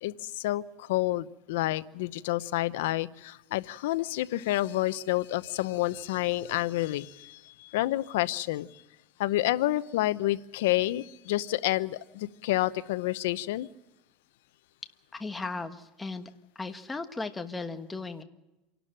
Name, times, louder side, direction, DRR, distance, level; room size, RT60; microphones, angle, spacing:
voice 1, 0.0-8.8 9.2-13.7, left 16 dB, 85° left, 16 dB, 0.8 m, -29 dB
voice 2, 15.1-16.3 16.5-18.2, left 3 dB, 10° left, 7 dB, 1.3 m, -36 dB
27.5 x 12.0 x 8.8 m, 1.0 s
supercardioid pair, 145°, 0 cm